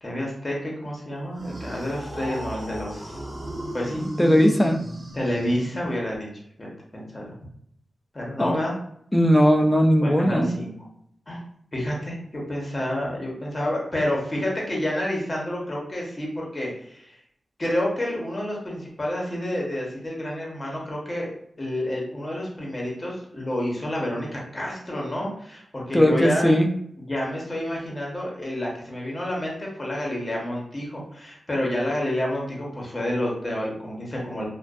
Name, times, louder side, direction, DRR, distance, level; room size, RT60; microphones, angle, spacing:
voice 1, 0.0-3.2 3.7-4.0 5.1-6.3 6.6-7.3 8.1-8.7 10.0-10.7 11.3-11.4 11.7-17.2 17.6-21.3 21.6-26.5 27.1-34.4, left 1 dB, 30° left, -2 dB, 0.9 m, -29 dB
sound 1, 1.3-6.2, equal, 35° right, 0.7 m, -35 dB
voice 2, 4.2-4.8 8.4-8.5 9.1-10.5 25.9-26.7, equal, 10° left, 4 dB, 0.4 m, -18 dB
2.5 x 2.2 x 2.3 m, 0.69 s
cardioid pair, 65°, 0 cm